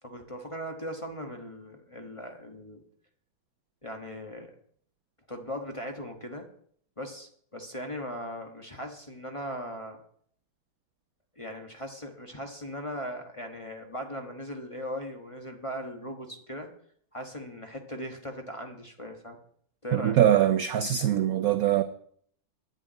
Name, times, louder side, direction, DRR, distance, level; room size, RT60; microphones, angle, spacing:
voice 1, 0.0-2.8 3.8-4.5 5.3-6.5 7.0-10.0 11.4-16.7 17.1-19.4 19.8-20.2, equal, 20° left, 1.1 m, -38 dB
voice 2, 19.9-21.8, right 11 dB, 70° right, 0.8 m, -23 dB
10.5 x 6.3 x 9.0 m
omnidirectional pair, 2.1 m